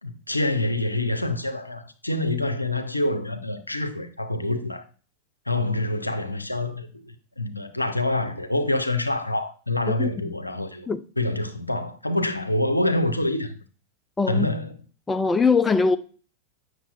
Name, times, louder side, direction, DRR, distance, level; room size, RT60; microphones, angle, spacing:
voice 1, 0.0-4.8 5.5-10.9 11.2-13.5 14.3-14.7, left 1 dB, 85° left, 0.6 m, -26 dB
voice 2, 14.2-14.5 15.1-16.0, left 4 dB, 10° left, 0.4 m, -21 dB
8.1 x 6.3 x 2.4 m
figure-of-eight pair, 90°, 0 cm